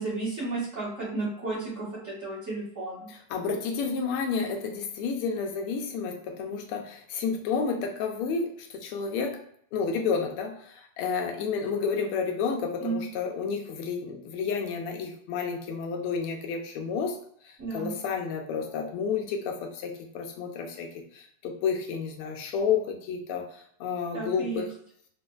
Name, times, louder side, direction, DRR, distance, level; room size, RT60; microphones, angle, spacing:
voice 1, 0.0-3.1 12.8-13.0 17.6-17.9 24.1-24.6, right 3 dB, 40° right, -9 dB, 1.5 m, -33 dB
voice 2, 3.1-9.4 9.7-17.2 17.4-24.7, left 5 dB, 85° left, 3 dB, 1.6 m, -31 dB
4.2 x 2.5 x 2.3 m, 0.66 s
omnidirectional pair, 2.4 m